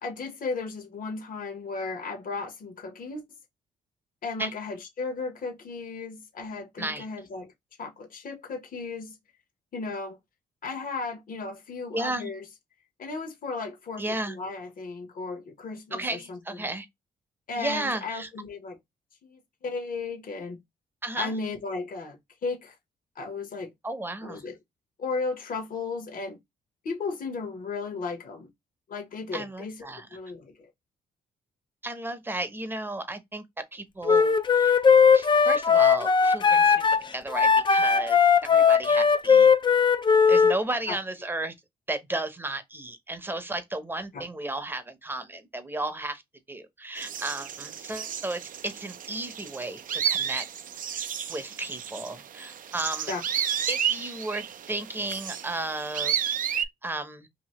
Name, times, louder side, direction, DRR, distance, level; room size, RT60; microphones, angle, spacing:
voice 1, 0.0-3.2 4.2-7.5 7.8-9.2 9.7-10.2 10.6-12.4 13.0-16.7 17.5-18.8 19.2-20.6 21.2-22.7 23.2-23.7 24.2-24.6 25.0-26.4 26.8-28.5 28.9-30.7 40.9-41.0 44.1-44.2 53.1-53.2, left 4 dB, 55° left, 1.1 m, -35 dB
voice 2, 11.9-12.3 14.0-14.4 15.9-16.9 17.6-18.3 21.0-21.3 23.8-24.4 29.3-30.1 31.8-33.4 33.7-34.8 35.1-36.8 37.1-39.5 40.3-41.5 41.9-46.2 46.5-50.4 50.9-53.1 53.7-56.2 56.5-57.3, right 2 dB, 10° right, 0.7 m, -34 dB
Wind instrument woodwind instrument, 34.0-40.6, left 6 dB, 30° left, 0.4 m, -19 dB
sound 1, 47.0-56.6, right 8 dB, 55° right, 0.4 m, -32 dB
2.8 x 2.7 x 2.9 m
cardioid pair, 95°, 17 cm